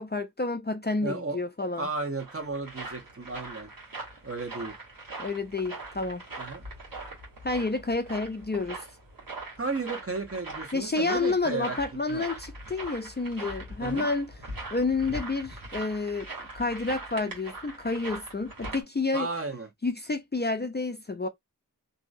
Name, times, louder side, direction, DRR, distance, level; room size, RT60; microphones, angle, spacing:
voice 1, 0.0-1.9 5.2-6.2 7.4-8.8 10.7-14.3 14.7-16.3 16.5-19.3 19.8-21.3, left 3 dB, 30° left, 0.4 m, -29 dB
voice 2, 1.0-1.4 1.8-3.7 4.2-4.8 6.4-6.6 9.6-11.8 12.1-12.2 13.8-14.1 19.1-19.7, right 3 dB, 40° right, 0.9 m, -33 dB
sound 1, 2.1-18.8, right 2 dB, 80° right, 1.3 m, -41 dB
2.6 x 2.2 x 2.5 m
wide cardioid pair, 45°, 34 cm